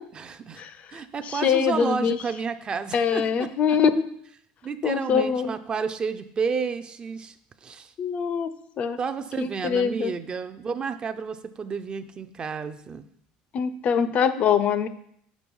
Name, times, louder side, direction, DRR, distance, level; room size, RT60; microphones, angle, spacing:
voice 1, 0.1-0.6 0.9-3.5 4.2-7.4 7.6-7.9 9.0-13.0, right 5 dB, 25° right, 10 dB, 0.4 m, -31 dB
voice 2, 1.3-2.2 2.9-4.1 4.8-5.5 8.0-9.0 9.4-10.1 13.5-14.9, left 7 dB, 35° left, 13 dB, 0.4 m, -23 dB
6.1 x 4.8 x 5.3 m, 0.69 s
cardioid pair, 135°, 4 cm